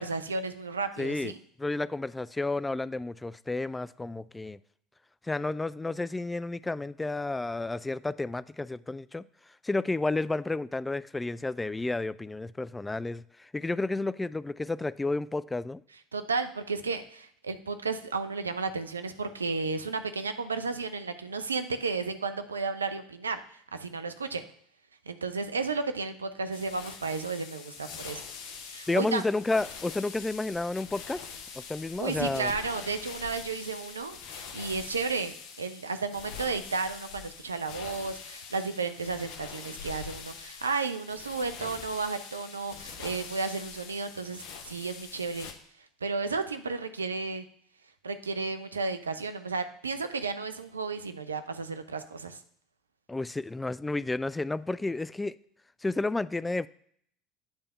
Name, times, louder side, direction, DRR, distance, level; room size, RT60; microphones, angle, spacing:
voice 1, 0.0-1.4 16.1-24.4 25.1-28.2 28.6-29.2 32.0-45.5 46.0-47.5 48.0-52.4, right 4 dB, 90° right, 10 dB, 0.5 m, -33 dB
voice 2, 1.0-1.3 1.6-4.6 5.2-9.2 9.6-15.8 28.9-31.2 31.5-32.5 53.1-55.4 55.8-56.7, left 2 dB, 15° left, 18 dB, 0.3 m, -31 dB
sound 1, 26.5-45.5, left 6 dB, 65° left, 1.0 m, -44 dB
8.8 x 3.4 x 5.4 m, 0.65 s
hypercardioid pair, 70°, 0 cm